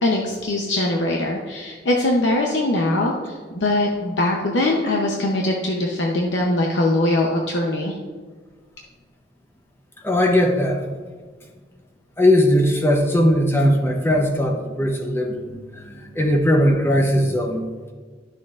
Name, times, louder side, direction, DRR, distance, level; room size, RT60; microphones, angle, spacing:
voice 1, 0.0-8.0, left 1 dB, 75° left, -1 dB, 0.8 m, -22 dB
voice 2, 10.0-10.8 12.2-17.7, left 1 dB, 10° left, 2 dB, 0.7 m, -19 dB
11.5 x 6.5 x 2.5 m, 1.5 s
head